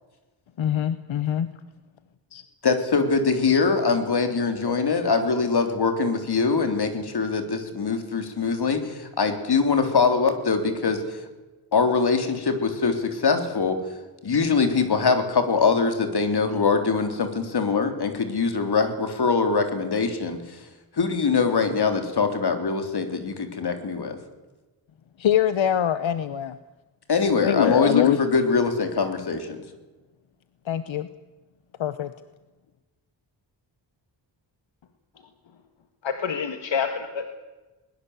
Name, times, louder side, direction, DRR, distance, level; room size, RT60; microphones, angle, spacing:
voice 1, 0.6-1.5 2.3-2.4 25.2-26.6 27.4-28.2 30.7-31.1 31.8-32.1, left 10 dB, 90° left, 13 dB, 1.1 m, -23 dB
voice 2, 2.6-11.0 11.7-13.8 14.2-20.6 20.9-24.2 27.1-29.6, left 4 dB, 55° left, 7 dB, 3.6 m, -23 dB
voice 3, 36.0-37.3, left 6 dB, 70° left, 7 dB, 1.9 m, -27 dB
21.5 x 21.0 x 8.2 m, 1.2 s
wide cardioid pair, 140°, 45 cm